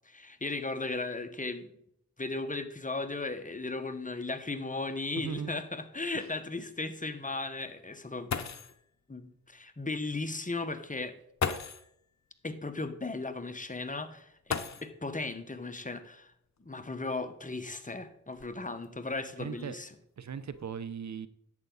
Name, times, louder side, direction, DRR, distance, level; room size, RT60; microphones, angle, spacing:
voice 1, 0.1-1.7 2.2-8.3 9.1-11.1 12.4-16.3 16.6-19.9, left 3 dB, 25° left, 8 dB, 1.3 m, -36 dB
sound 1, 4.4-4.5 4.9-5.0 5.6-5.7 8.0-8.1 8.3-8.9 10.1-10.2 11.4-12.0 14.4-15.2 16.6-16.7 17.4-18.9 19.5-19.9 20.3-20.7, left 6 dB, 55° left, 0.9 m, -37 dB
voice 2, 5.2-5.6 6.1-6.3 19.4-19.8 20.2-21.3, right 7 dB, 55° right, 15 dB, 0.7 m, -38 dB
11.0 x 8.3 x 4.0 m, 0.74 s
cardioid pair, 50°, 33 cm